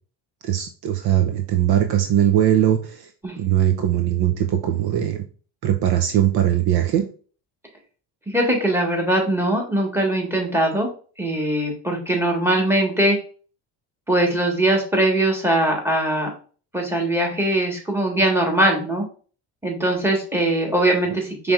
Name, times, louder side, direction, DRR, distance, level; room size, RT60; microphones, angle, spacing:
voice 1, 0.4-3.1 3.4-5.2 5.6-7.1 21.0-21.1, right 11 dB, 55° right, 7 dB, 0.6 m, -20 dB
voice 2, 8.3-10.9 11.2-13.2 14.1-16.3 16.7-19.0 19.6-21.5, right 1 dB, 5° right, 1 dB, 1.4 m, -21 dB
5.0 x 3.3 x 2.4 m, 0.39 s
supercardioid pair, 85°, 45 cm